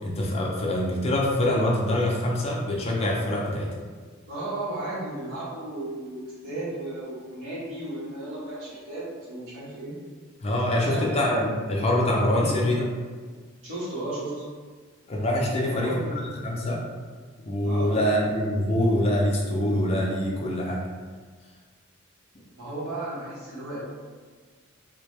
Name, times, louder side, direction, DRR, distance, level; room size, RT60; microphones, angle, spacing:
voice 1, 0.0-3.7 10.4-12.9 15.1-16.0 16.4-16.8 17.4-20.8, left 1 dB, 30° left, -2 dB, 0.4 m, -24 dB
voice 2, 4.3-10.0 10.7-11.1 12.3-12.5 13.6-14.4 15.5-16.2 17.6-18.0 22.5-23.8, right 2 dB, 75° right, -8 dB, 1.3 m, -34 dB
3.4 x 2.2 x 3.3 m, 1.5 s
head